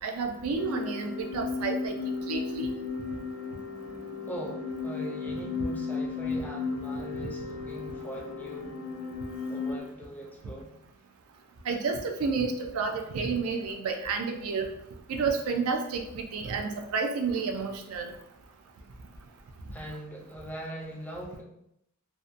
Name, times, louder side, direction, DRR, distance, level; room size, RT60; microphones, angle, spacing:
voice 1, 0.0-1.9 2.3-2.7 7.2-7.3 11.7-14.7 15.1-18.1, right 4 dB, 80° right, 4 dB, 0.4 m, -30 dB
sound 1, 0.6-9.8, left 4 dB, 80° left, 0.6 m, -34 dB
voice 2, 4.3-8.8 9.5-10.7 19.7-21.4, equal, 10° left, -1 dB, 0.4 m, -41 dB
2.7 x 2.1 x 2.4 m, 0.79 s
head